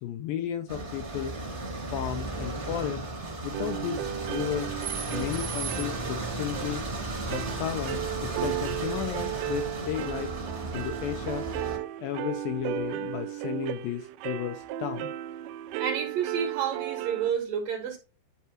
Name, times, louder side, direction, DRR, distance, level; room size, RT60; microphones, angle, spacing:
voice 1, 0.0-1.4 1.9-3.0 3.4-4.7 5.1-6.9 7.3-10.3 10.7-11.5 12.0-15.1, left 11 dB, 80° left, 2.1 m, -34 dB
sound 1, 0.7-11.8, right 2 dB, 30° right, 1.2 m, -35 dB
sound 2, 3.5-17.3, right 12 dB, 80° right, 2.3 m, -35 dB
voice 2, 15.8-18.0, right 8 dB, 60° right, 2.8 m, -30 dB
11.0 x 4.6 x 3.0 m
omnidirectional pair, 4.9 m